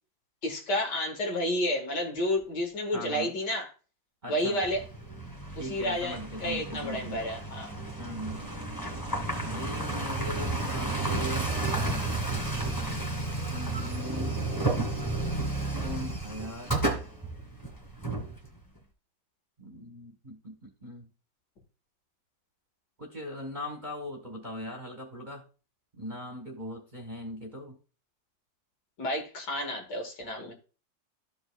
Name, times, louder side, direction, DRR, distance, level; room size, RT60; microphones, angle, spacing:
voice 1, 0.4-3.7 4.3-4.8 5.6-7.7 29.0-30.5, left 1 dB, 65° left, 2.3 m, -30 dB
voice 2, 2.9-3.3 4.2-4.6 5.6-7.3 8.0-8.5 9.4-11.5 13.5-14.4 15.8-16.7 19.6-21.1 23.0-25.4 25.9-27.8, equal, 25° right, 1.3 m, -40 dB
sound 1, 4.6-18.8, right 2 dB, 10° left, 1.8 m, -32 dB
13.5 x 5.3 x 2.4 m
omnidirectional pair, 2.0 m